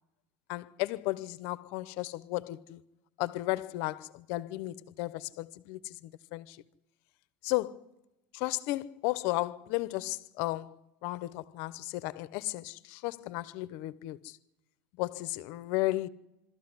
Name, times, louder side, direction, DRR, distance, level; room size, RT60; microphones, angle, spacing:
voice 1, 0.5-2.8 3.2-6.6 7.4-7.8 8.3-10.7 11.0-14.4 15.0-16.1, left 18 dB, 55° left, 0.9 m, -34 dB
26.0 x 13.5 x 9.8 m
cardioid pair, 170°, 5 cm